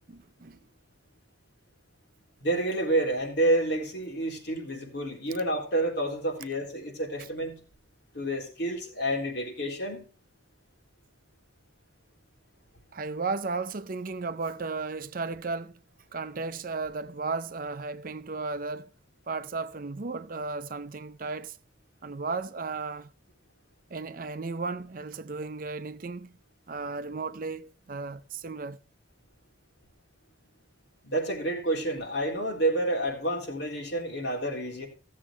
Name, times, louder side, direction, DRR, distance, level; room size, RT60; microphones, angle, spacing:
voice 1, 0.1-0.6 12.9-15.8 16.1-18.9 19.3-21.6 22.0-23.1 23.9-26.3 26.7-28.8, right 4 dB, 50° right, 0.6 m, -34 dB
voice 2, 2.4-7.6 8.1-10.1 31.0-34.9, right 1 dB, 60° left, 3.8 m, -29 dB
15.5 x 7.4 x 4.5 m
head